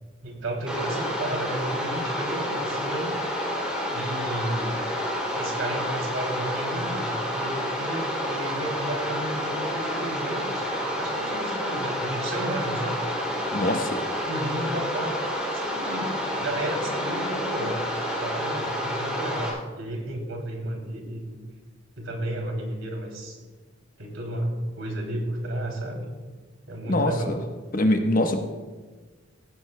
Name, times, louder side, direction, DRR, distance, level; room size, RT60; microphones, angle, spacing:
voice 1, 0.2-3.2 3.9-4.9 5.3-13.0 14.3-15.2 15.5-21.4 22.0-23.4 24.0-26.0 26.7-27.4, right 1 dB, 75° right, 1 dB, 2.8 m, -32 dB
sound 1, 0.7-19.5, equal, 5° right, 2.7 m, -29 dB
voice 2, 13.5-14.0 26.9-27.4 27.7-28.4, left 1 dB, 45° left, 5 dB, 1.0 m, -23 dB
17.0 x 16.0 x 2.2 m, 1.3 s
head